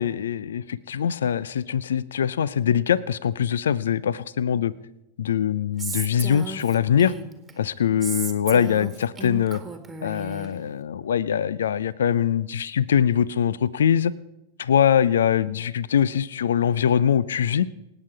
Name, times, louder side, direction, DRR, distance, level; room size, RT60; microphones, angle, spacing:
voice 1, 0.0-4.7 5.2-7.1 7.6-9.6 10.0-14.1 14.6-17.7, left 8 dB, 65° left, 21 dB, 0.5 m, -22 dB
Female speech woman speaking, 5.8-7.5 8.0-10.5, right 4 dB, 10° right, 1.9 m, -34 dB
26.5 x 9.0 x 4.7 m, 0.93 s
figure-of-eight pair, 90°, 0 cm